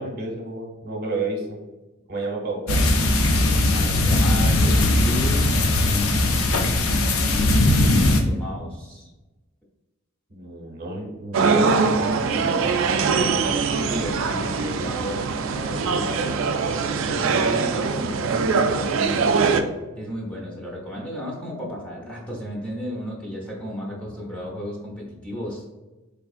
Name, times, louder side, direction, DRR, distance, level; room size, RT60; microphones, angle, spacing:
voice 1, 0.0-1.5 2.1-2.9 10.3-12.7, right 2 dB, 45° right, -1 dB, 0.8 m, -31 dB
sound 1, 2.7-8.2, left 2 dB, 80° left, 0.5 m, -19 dB
voice 2, 3.7-7.2 7.8-9.1 13.3-16.3 16.8-19.5 20.0-25.6, equal, 5° left, -4 dB, 0.6 m, -33 dB
sound 2, 11.3-19.6, right 5 dB, 65° right, 0.3 m, -22 dB
3.6 x 3.4 x 2.4 m, 1.1 s
head